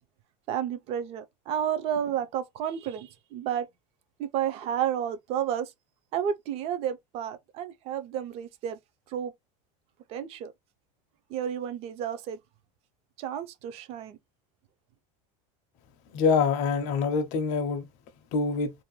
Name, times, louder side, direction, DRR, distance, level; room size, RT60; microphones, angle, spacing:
voice 1, 0.5-3.7 4.2-5.7 6.1-8.8 9.1-9.3 10.1-10.5 11.3-12.4 13.2-14.2, right 9 dB, 35° right, 0.4 m, -31 dB
voice 2, 16.1-17.9 18.3-18.7, left 5 dB, 45° left, 0.5 m, -25 dB
2.5 x 2.1 x 3.0 m
supercardioid pair, 160°, 17 cm